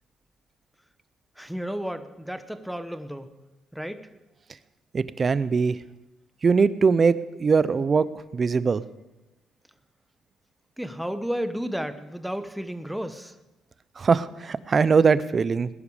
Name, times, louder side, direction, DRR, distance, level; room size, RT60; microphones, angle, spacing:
voice 1, 1.4-3.3 3.7-4.1 10.8-13.4, equal, 5° right, 10 dB, 1.1 m, -32 dB
voice 2, 4.9-5.8 6.4-8.1 8.3-8.8 14.0-15.7, right 5 dB, 40° right, 17 dB, 0.7 m, -21 dB
20.0 x 10.5 x 5.0 m, 1.0 s
cardioid pair, 90°, 0 cm